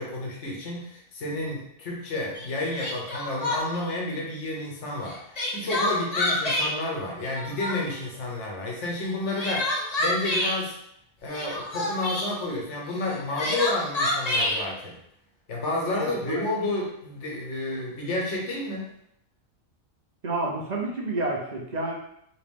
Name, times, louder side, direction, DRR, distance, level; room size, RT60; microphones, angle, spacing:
voice 1, 0.0-10.7 11.2-15.0 15.5-18.9, left 2 dB, 60° left, -2 dB, 1.2 m, -31 dB
Crying sobbing, 2.4-2.5 2.8-3.8 5.1-6.7 7.2-8.0 9.1-10.6 11.3-12.3 13.1-14.6, left 1 dB, 40° left, 0.6 m, -27 dB
voice 2, 15.9-16.4 20.2-21.9, right 2 dB, 45° right, -2 dB, 0.6 m, -29 dB
3.0 x 3.0 x 3.4 m, 0.73 s
omnidirectional pair, 1.4 m